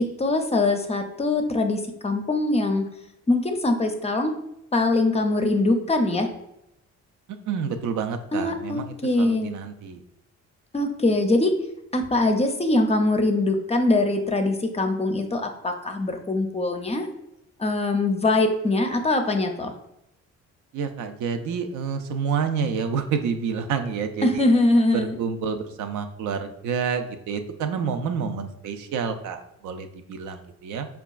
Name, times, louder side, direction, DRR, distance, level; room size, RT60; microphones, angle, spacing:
voice 1, 0.0-2.8 3.3-4.3 4.7-6.3 8.3-9.6 10.7-11.5 11.9-17.1 17.6-19.7 24.2-25.2, left 2 dB, 20° left, 5 dB, 0.4 m, -22 dB
voice 2, 7.5-10.0 20.7-24.4 24.9-30.9, right 6 dB, 75° right, 7 dB, 0.5 m, -28 dB
4.8 x 2.3 x 2.3 m, 0.82 s
cardioid pair, 90°, 30 cm